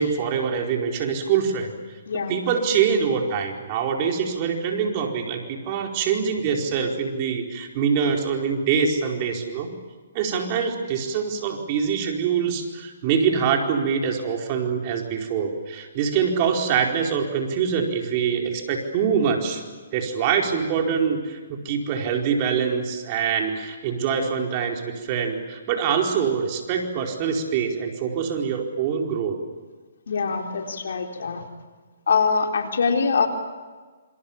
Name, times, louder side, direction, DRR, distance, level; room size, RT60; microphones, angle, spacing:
voice 1, 0.0-1.7 2.3-9.7 10.1-19.6 19.9-29.4, right 6 dB, 35° right, 2 dB, 4.6 m, -24 dB
voice 2, 2.1-2.4 30.1-31.5 32.1-33.3, left 5 dB, 70° left, 3 dB, 4.1 m, -23 dB
27.5 x 26.0 x 7.3 m, 1.4 s
hypercardioid pair, 145°, 0 cm